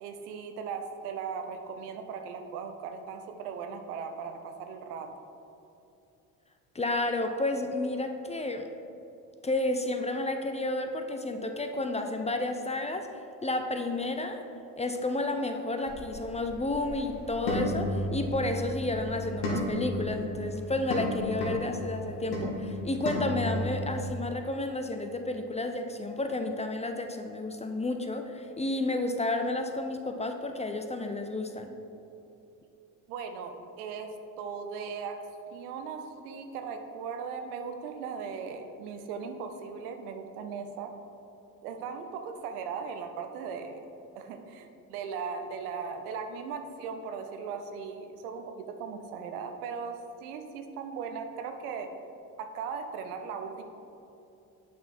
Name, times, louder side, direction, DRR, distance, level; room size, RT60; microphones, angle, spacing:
voice 1, 0.0-5.1 33.1-35.2 35.5-40.9 41.6-43.8 44.2-51.9 52.4-53.6, right 6 dB, 80° right, 6 dB, 0.7 m, -38 dB
voice 2, 6.7-8.7 9.4-13.1 13.4-14.4 14.8-31.8, left 2 dB, 15° left, 6 dB, 0.6 m, -31 dB
sound 1, 15.9-24.0, left 1 dB, 70° left, 1.7 m, -34 dB
8.2 x 5.0 x 4.3 m, 2.8 s
hypercardioid pair, 55°, 44 cm